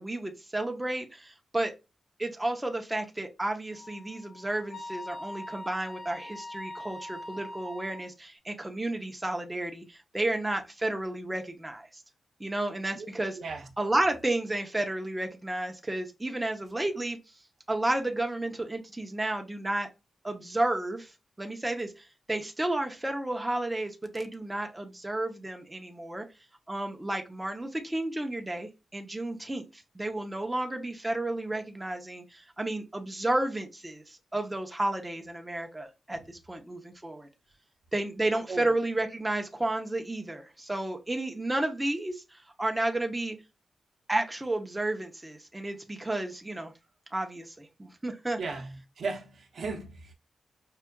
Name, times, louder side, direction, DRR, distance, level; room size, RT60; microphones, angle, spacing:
voice 1, 0.0-1.7 2.2-12.0 12.4-13.4 13.8-17.2 17.7-19.9 20.2-21.1 21.4-26.3 26.7-37.3 37.9-43.4 44.1-46.7 47.1-48.4, right 1 dB, 10° right, 0.7 m, -32 dB
Wind instrument woodwind instrument, 3.8-8.1, left 1 dB, 50° left, 1.4 m, -42 dB
voice 2, 13.4-13.7 38.5-38.7 48.4-50.1, right 4 dB, 55° right, 0.7 m, -36 dB
5.5 x 2.4 x 2.3 m
wide cardioid pair, 150°, 0 cm